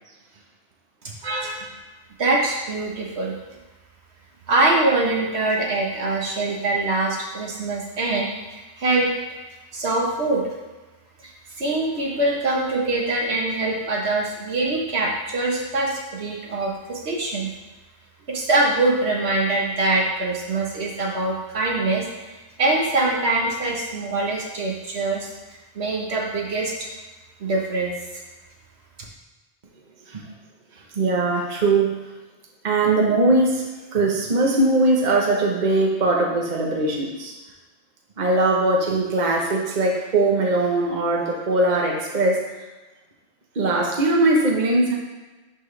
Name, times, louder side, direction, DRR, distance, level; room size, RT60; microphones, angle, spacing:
voice 1, 1.2-1.7 30.1-30.2 30.9-31.9 32.6-33.6 33.9-37.3 38.2-42.5 43.5-44.9, right 2 dB, 45° right, -1 dB, 1.1 m, -20 dB
voice 2, 2.2-3.3 4.5-9.1 9.7-10.5 11.2-11.3 11.6-17.5 18.3-22.3 22.6-25.3 25.7-26.9 27.4-27.9, right 2 dB, 70° right, -2 dB, 1.4 m, -23 dB
11.0 x 4.5 x 3.3 m, 1.2 s
omnidirectional pair, 1.1 m